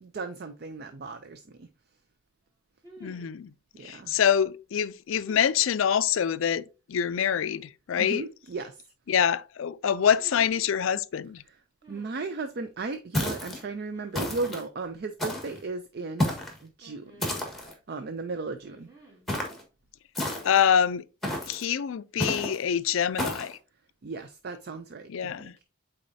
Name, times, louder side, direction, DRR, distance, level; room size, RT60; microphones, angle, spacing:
voice 1, 0.0-1.7 3.8-4.2 8.0-8.8 11.5-11.6 11.9-16.3 16.6-18.9 24.0-25.6, right 3 dB, 50° right, 0.4 m, -36 dB
sound 1, 0.9-1.0 2.8-3.4 5.1-5.6 7.1-7.6 10.1-10.7 11.8-12.5 13.9-14.6 14.8-14.9 16.8-17.7 18.6-19.3 20.3-20.6, right 2 dB, 20° right, 2.2 m, -52 dB
voice 2, 3.0-3.5 3.8-6.6 6.9-8.2 9.1-11.4 20.4-21.1 21.5-23.6 25.1-25.5, left 8 dB, 70° left, 0.4 m, -25 dB
sound 2, 13.1-13.6 14.1-14.6 15.2-15.6 16.2-16.6 17.2-17.7 19.3-19.6 20.1-20.7 21.2-21.6 22.2-22.6 23.2-23.5, left 1 dB, ahead, 1.4 m, -31 dB
8.5 x 4.1 x 2.7 m
head